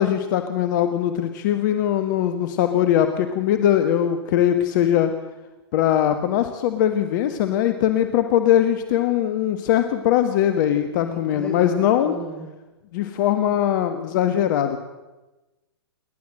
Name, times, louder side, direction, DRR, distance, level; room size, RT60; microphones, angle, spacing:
voice 1, 0.0-5.1 5.7-12.1 12.9-14.8, left 10 dB, 45° left, 8 dB, 1.6 m, -21 dB
voice 2, 11.0-12.5, equal, 5° left, 0 dB, 6.7 m, -34 dB
28.0 x 12.0 x 7.8 m, 1.1 s
hypercardioid pair, 120°, 14 cm